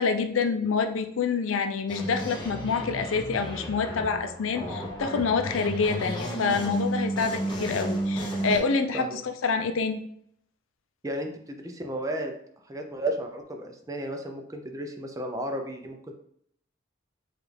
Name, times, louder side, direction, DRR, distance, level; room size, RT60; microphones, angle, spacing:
voice 1, 0.0-10.0, left 5 dB, 85° left, 7 dB, 0.4 m, -27 dB
sound 1, 1.9-8.6, right 1 dB, 25° left, 0.9 m, -32 dB
voice 2, 11.0-12.3 12.6-16.1, right 1 dB, 15° right, 4 dB, 0.4 m, -33 dB
4.9 x 2.4 x 3.2 m, 0.68 s
head